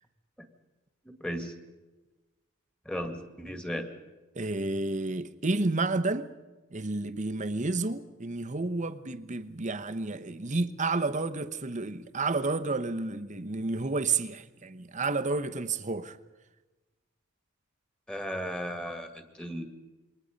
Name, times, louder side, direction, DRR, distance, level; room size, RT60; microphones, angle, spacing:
voice 1, 1.1-1.5 2.9-3.9 18.1-19.6, equal, 5° left, 2.0 m, -35 dB
voice 2, 4.4-6.3 6.7-16.2, right 3 dB, 35° right, 1.0 m, -30 dB
27.5 x 22.5 x 5.3 m
head